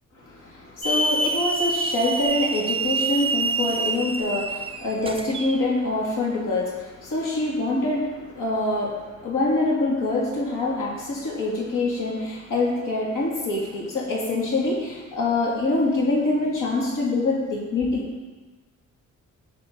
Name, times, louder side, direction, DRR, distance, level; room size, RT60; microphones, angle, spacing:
voice 1, 0.2-18.0, left 2 dB, 90° left, -4 dB, 2.6 m, -25 dB
Hiss / Alarm, 0.8-5.6, right 3 dB, 20° right, 0.6 m, -26 dB
17.5 x 6.7 x 4.1 m, 1.2 s
wide cardioid pair, 140°, 31 cm